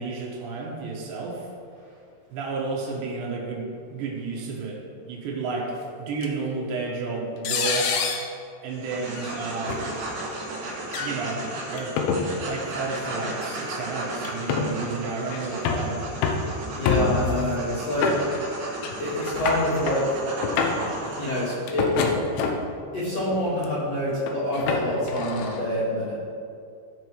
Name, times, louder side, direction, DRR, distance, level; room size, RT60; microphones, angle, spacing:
voice 1, 0.0-1.5 2.3-4.8 5.1-5.7 6.0-8.0 8.6-10.0 11.0-11.4 11.7-11.9 12.4-16.0, right 4 dB, 75° right, -2 dB, 3.7 m, -31 dB
sound 1, 6.2-6.3 7.4-8.3 9.2-9.3 9.7-9.8 10.8-11.1 11.8-12.2 13.4-13.5 14.2-14.7 15.3-15.9 16.2-16.5 16.9-17.4 18.0-18.6 18.8-18.9 19.2-20.0 20.4-20.9 21.7-22.7 23.3-23.7 24.3-25.6, left 5 dB, 85° left, 3.3 m, -26 dB
sound 2, 8.7-21.5, right 2 dB, 55° right, 3.5 m, -35 dB
voice 2, 16.7-18.1 19.0-20.1 21.1-22.1 22.9-26.2, left 1 dB, 40° left, -9 dB, 2.9 m, -26 dB
16.0 x 5.5 x 4.7 m, 2.4 s
omnidirectional pair, 5.2 m